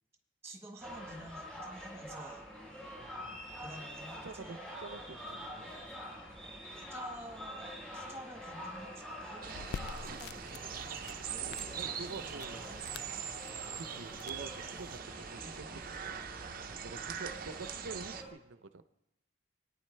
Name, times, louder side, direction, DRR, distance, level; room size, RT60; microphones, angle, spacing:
voice 1, 0.4-2.5 3.6-4.6 6.8-9.5 10.0-13.3, right 1 dB, 15° right, 2 dB, 1.5 m, -50 dB
sound 1, 0.8-18.3, equal, 5° left, 4.2 m, -47 dB
voice 2, 3.0-3.3 4.2-5.7 11.7-12.6 13.7-16.6 16.8-18.8, right 3 dB, 90° right, 12 dB, 0.7 m, -47 dB
sound 2, 9.4-18.2, right 7 dB, 50° right, 0.6 m, -42 dB
sound 3, 9.5-15.0, left 6 dB, 60° left, 0.3 m, -48 dB
21.5 x 9.2 x 3.4 m, 0.89 s
head